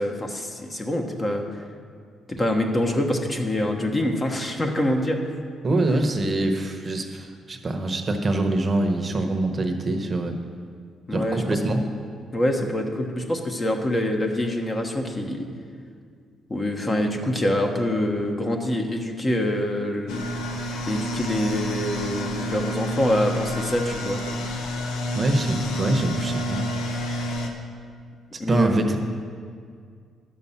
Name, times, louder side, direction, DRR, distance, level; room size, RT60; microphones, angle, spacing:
voice 1, 0.0-1.5 2.3-5.3 11.1-11.6 12.3-15.5 16.5-20.2 20.9-24.2 28.4-28.8, left 1 dB, 25° left, 3 dB, 1.1 m, -25 dB
voice 2, 5.6-10.4 11.1-11.8 25.1-26.6 28.5-29.0, right 2 dB, 35° right, 4 dB, 0.9 m, -24 dB
sound 1, 20.1-27.5, equal, 90° left, 1.0 m, -29 dB
11.0 x 6.9 x 5.7 m, 2.1 s
cardioid pair, 90°, 0 cm